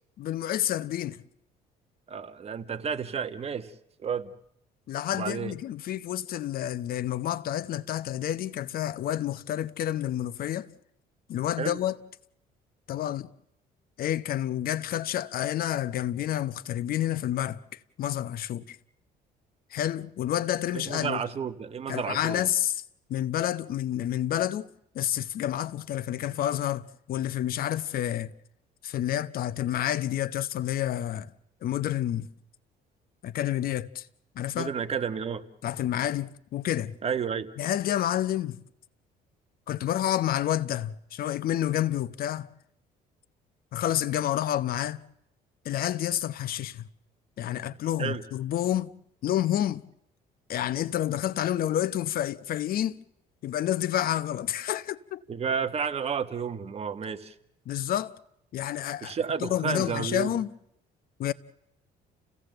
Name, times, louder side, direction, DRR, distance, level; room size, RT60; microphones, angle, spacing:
voice 1, 0.2-1.2 4.9-10.7 11.3-12.0 12.9-13.3 14.0-18.8 19.7-21.2 21.9-22.8 23.1-24.7 24.9-28.3 28.8-31.3 31.6-32.3 33.2-34.1 34.4-34.7 35.6-36.9 37.6-38.6 39.7-42.5 43.7-45.0 45.6-46.8 47.4-49.0 49.2-49.9 50.5-52.9 53.4-55.2 57.7-58.1 58.5-60.5 61.2-61.3, left 12 dB, 60° left, 0.9 m, -29 dB
voice 2, 2.1-3.7 4.0-4.3 5.1-5.5 11.6-11.8 20.7-22.4 34.6-35.4 37.0-37.5 48.0-48.2 55.3-57.3 59.0-60.3, right 6 dB, 35° right, 1.4 m, -31 dB
29.0 x 16.5 x 7.8 m
cardioid pair, 110°, 17 cm